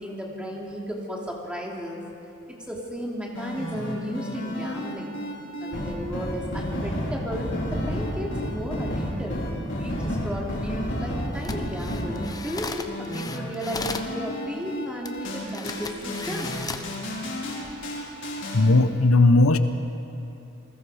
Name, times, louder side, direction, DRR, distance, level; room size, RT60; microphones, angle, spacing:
voice 1, 0.0-2.0 2.5-5.2 5.6-9.4 9.8-16.6, equal, 5° right, -2 dB, 2.9 m, -34 dB
sound 1, 3.3-18.6, equal, 60° left, 4.7 m, -31 dB
sound 2, 11.3-14.1 15.0-15.1 15.5-16.9 17.5-17.7, left 3 dB, 20° left, 0.9 m, -36 dB
voice 2, 18.5-19.6, left 2 dB, 85° left, 10 dB, 1.0 m, -17 dB
28.5 x 20.5 x 5.0 m, 2.7 s
head